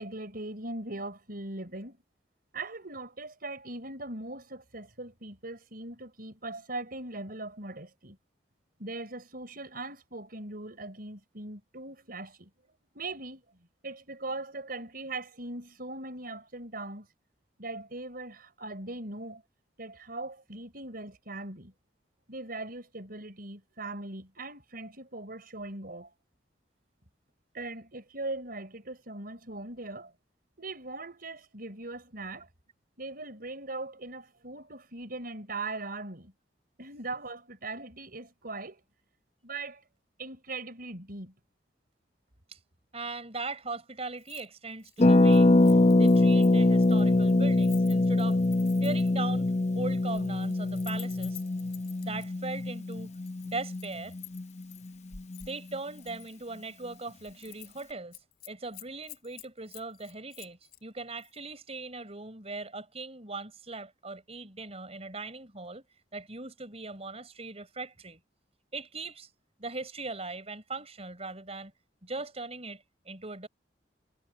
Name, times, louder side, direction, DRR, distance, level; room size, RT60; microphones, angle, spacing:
voice 1, 0.0-2.0 2.5-8.2 8.8-12.5 12.9-13.4 13.8-17.1 17.6-19.4 19.8-21.7 22.3-26.1 27.5-30.1 30.6-32.5 33.0-36.3 36.8-38.8 39.4-39.8 40.2-41.3, right 2 dB, 55° right, 5.2 m, -40 dB
voice 2, 42.9-45.5 46.0-48.4 48.8-49.5 49.7-51.4 52.0-53.1 53.4-54.1 55.4-58.2 58.5-65.8 66.1-68.2 68.7-69.3 69.6-71.7 72.0-73.5, right 3 dB, 35° right, 5.1 m, -39 dB
Keys jangling, 44.2-44.5 44.7-49.3 49.9-52.3 52.9-54.9 55.3-56.4 56.7-56.9 57.2-57.8 58.1-60.8 61.2-61.4, left 15 dB, 60° left, 5.9 m, -51 dB
Harp, 45.0-54.6 54.9-55.0 55.1-55.5, left 2 dB, 40° left, 0.9 m, -23 dB
head